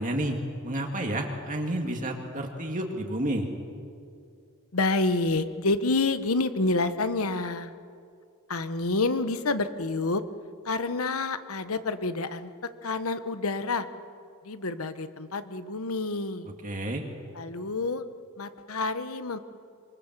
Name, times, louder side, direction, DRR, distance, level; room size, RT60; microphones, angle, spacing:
voice 1, 0.0-3.5 16.6-17.0, right 1 dB, 40° right, 2 dB, 2.1 m, -30 dB
voice 2, 4.7-7.7 8.5-10.2 10.6-12.5 12.8-13.9 14.4-16.5 17.3-18.0 18.4-19.4, left 3 dB, 75° left, 11 dB, 1.2 m, -28 dB
25.5 x 24.0 x 7.5 m, 2.4 s
head